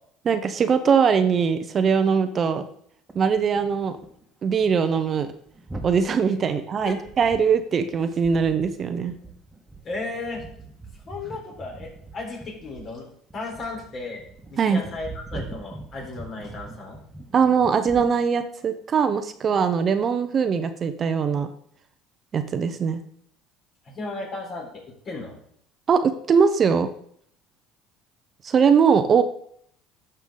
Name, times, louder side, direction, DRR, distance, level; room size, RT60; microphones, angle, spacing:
voice 1, 0.2-2.6 3.1-4.0 4.4-5.3 5.8-9.2 14.6-14.8 17.3-21.5 22.3-23.0 25.9-26.9 28.4-29.2, right 6 dB, 40° right, 9 dB, 0.7 m, -21 dB
sound 1, 3.1-4.2 4.5-4.7 5.0-18.2, right 2 dB, 15° right, 1.5 m, -42 dB
voice 2, 9.8-10.5 10.9-13.1 13.3-14.2 14.5-17.0 23.8-25.4, left 3 dB, 45° left, 0 dB, 3.9 m, -35 dB
12.5 x 5.5 x 3.8 m, 0.66 s
supercardioid pair, 95°, 0 cm